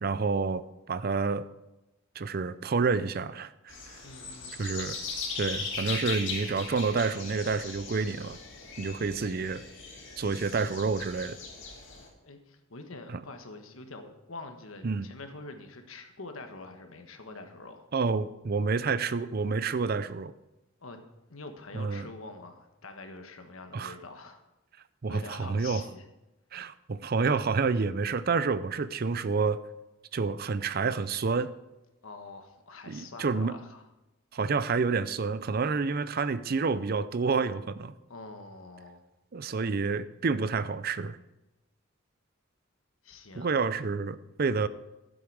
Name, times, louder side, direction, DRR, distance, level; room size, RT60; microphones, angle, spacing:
voice 1, 0.0-1.4 2.2-4.0 4.6-5.0 5.4-8.4 8.8-9.6 10.2-11.4 13.1-13.2 14.8-15.1 17.9-20.3 21.7-22.1 23.7-23.9 25.0-25.8 26.5-29.6 30.1-31.5 32.9-33.6 34.3-37.9 39.3-41.2 43.3-44.7, right 4 dB, 50° right, 15 dB, 0.5 m, -29 dB
sound 1, 3.7-12.1, left 4 dB, 65° left, 2.7 m, -39 dB
voice 2, 4.0-4.6 12.2-17.9 20.8-21.0 21.3-24.4 25.1-26.0 32.0-33.8 38.1-39.1 43.0-43.6, left 3 dB, 85° left, 6 dB, 1.4 m, -45 dB
13.5 x 8.0 x 4.8 m, 0.96 s
head